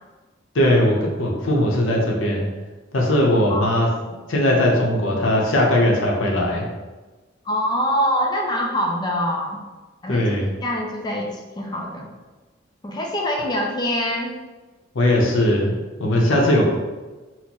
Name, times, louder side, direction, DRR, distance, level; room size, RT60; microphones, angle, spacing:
voice 1, 0.5-2.5 2.9-3.9 4.3-6.6 10.1-10.5 14.9-16.6, left 1 dB, 75° left, -1 dB, 0.7 m, -19 dB
voice 2, 7.4-9.6 10.0-10.3 10.6-12.1 12.8-14.4, equal, 20° left, 0 dB, 0.4 m, -24 dB
4.2 x 2.1 x 2.9 m, 1.2 s
head